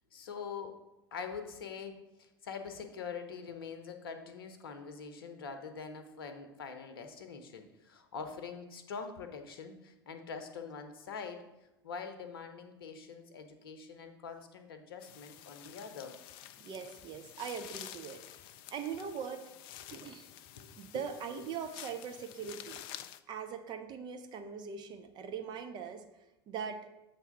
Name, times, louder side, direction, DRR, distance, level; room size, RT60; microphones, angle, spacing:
voice 1, 0.1-0.8 1.1-11.4 11.8-16.2 19.9-20.0 20.5-21.0 21.4-21.5 22.4-22.5, left 5 dB, 65° left, 7 dB, 0.8 m, -44 dB
sound 1, 15.0-23.2, left 12 dB, 40° left, 0.3 m, -50 dB
voice 2, 16.6-18.3 18.7-19.5 19.9-20.3 20.8-22.8 23.3-26.1 26.5-26.9, right 7 dB, 35° right, 6 dB, 0.7 m, -41 dB
7.3 x 3.5 x 5.5 m, 0.97 s
figure-of-eight pair, 80°, 13 cm